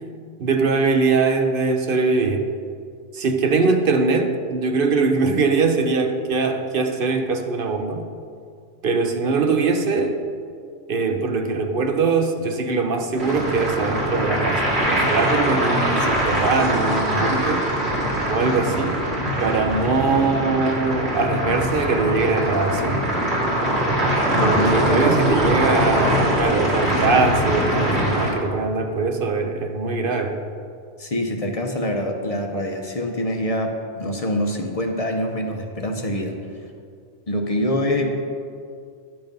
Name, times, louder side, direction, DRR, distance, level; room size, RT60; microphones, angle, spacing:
voice 1, 0.4-2.5 3.1-8.0 8.8-10.2 10.9-17.7 18.3-19.0 19.4-23.0 24.4-30.4, right 4 dB, 60° right, 5 dB, 0.9 m, -22 dB
sound 1, 13.2-28.3, right 1 dB, 80° right, 2.8 m, -22 dB
voice 2, 24.6-25.2 31.0-36.3 37.3-38.2, left 1 dB, 40° left, 3 dB, 0.8 m, -25 dB
10.5 x 7.4 x 5.3 m, 2.3 s
omnidirectional pair, 1.1 m